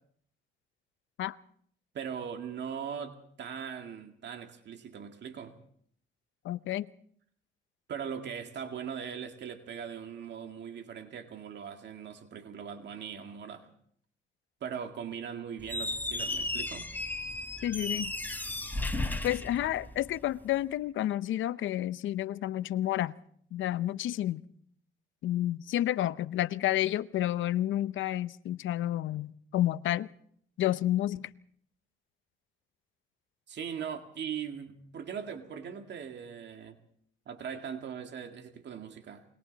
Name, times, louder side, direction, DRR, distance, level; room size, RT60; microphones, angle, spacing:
voice 1, 1.9-5.5 7.9-13.7 14.6-16.9 33.5-36.8 37.3-39.2, right 7 dB, 60° right, 2.2 m, -40 dB
voice 2, 6.4-6.9 17.6-18.1 19.2-23.1 23.5-24.4 25.2-30.1 30.6-31.3, left 13 dB, 75° left, 0.8 m, -30 dB
Squeak, 15.6-20.3, left 2 dB, 10° left, 3.6 m, -34 dB
29.5 x 21.5 x 4.1 m
cardioid pair, 90°, 20 cm